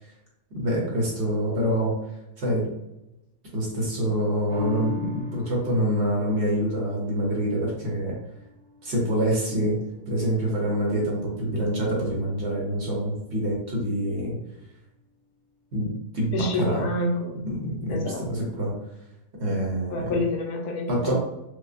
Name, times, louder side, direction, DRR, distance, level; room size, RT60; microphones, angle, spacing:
voice 1, 0.5-1.9 2.4-2.7 3.5-8.2 8.8-9.8 10.1-14.4 15.7-16.9 17.4-18.7 19.4-20.2 20.9-21.1, equal, 50° right, -3 dB, 1.0 m, -26 dB
sound 1, 4.5-11.2 11.6-11.7, left 3 dB, 70° right, 1.4 m, -41 dB
voice 2, 16.3-17.4 17.9-18.5 19.9-21.1, left 2 dB, 85° left, 1 dB, 1.2 m, -28 dB
4.8 x 2.0 x 2.5 m, 0.92 s
omnidirectional pair, 1.7 m